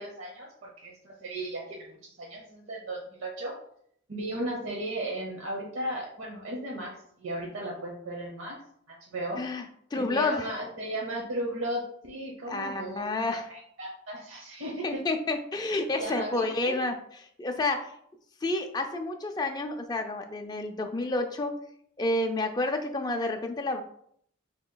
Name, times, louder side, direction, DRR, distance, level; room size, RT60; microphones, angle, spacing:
voice 1, 0.0-3.5 4.1-6.9 7.2-8.6 8.9-9.4 9.9-14.8 16.0-16.8, right 1 dB, 75° right, -2 dB, 0.8 m, -35 dB
voice 2, 9.9-10.5 12.5-13.5 14.8-16.9 17.4-17.9 18.4-21.5 22.0-23.8, left 2 dB, 20° left, 4 dB, 0.3 m, -29 dB
6.4 x 2.9 x 2.2 m, 0.67 s
head